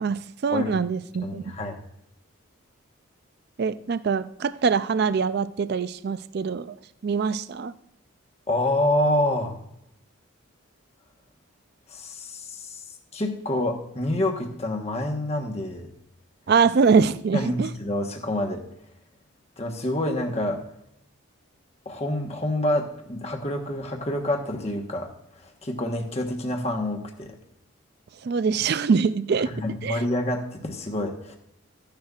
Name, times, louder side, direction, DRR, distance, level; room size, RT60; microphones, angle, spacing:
voice 1, 0.0-1.4 3.6-6.7 7.0-7.7 16.5-17.7 28.2-29.5 29.8-30.0, right 5 dB, 50° right, 14 dB, 0.3 m, -23 dB
voice 2, 1.2-1.8 8.5-9.5 11.9-12.8 13.1-15.9 17.3-18.6 19.6-20.6 21.8-25.1 25.4-27.4 29.4-31.4, left 1 dB, 30° left, 3 dB, 1.1 m, -27 dB
14.0 x 10.5 x 2.4 m, 0.79 s
head